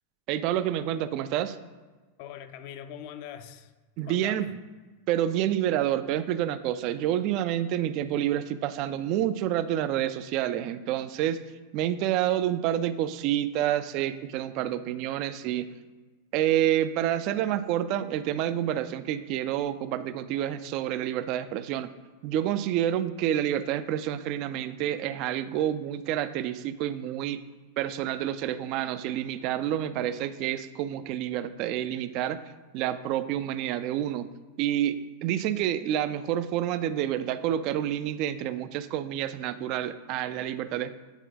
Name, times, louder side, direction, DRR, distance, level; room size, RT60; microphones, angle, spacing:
voice 1, 0.3-1.7 4.0-4.5 5.1-11.4 11.7-15.7 16.3-21.9 22.2-27.4 27.8-32.4 32.7-34.3 34.6-41.0, right 11 dB, 40° right, 13 dB, 0.3 m, -28 dB
voice 2, 2.2-3.7 4.0-4.5, left 9 dB, 45° left, 10 dB, 0.5 m, -42 dB
9.0 x 4.0 x 3.8 m, 1.3 s
figure-of-eight pair, 90°, 0 cm